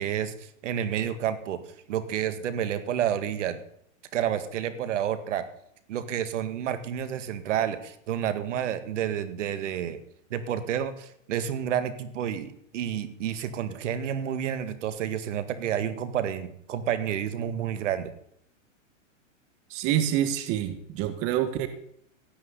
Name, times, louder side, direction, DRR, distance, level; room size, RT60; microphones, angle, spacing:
voice 1, 0.0-1.6 1.9-3.6 4.1-5.5 5.9-10.0 10.3-18.1, right 9 dB, 65° right, 12 dB, 2.0 m, -30 dB
voice 2, 19.7-21.7, right 11 dB, 35° right, 10 dB, 1.5 m, -27 dB
17.0 x 6.3 x 9.7 m, 0.70 s
hypercardioid pair, 140°, 39 cm